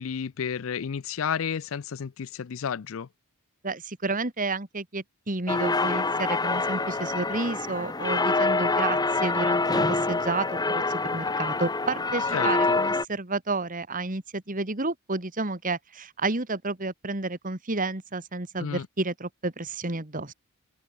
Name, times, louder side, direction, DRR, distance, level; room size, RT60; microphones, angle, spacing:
voice 1, 0.0-3.1 12.3-12.8 18.6-18.9, left 7 dB, 60° left, 0.4 m, -31 dB
voice 2, 3.6-20.3, right 3 dB, 35° right, 2.1 m, -31 dB
sound 1, 5.5-13.0, left 3 dB, 20° left, 1.0 m, -26 dB
head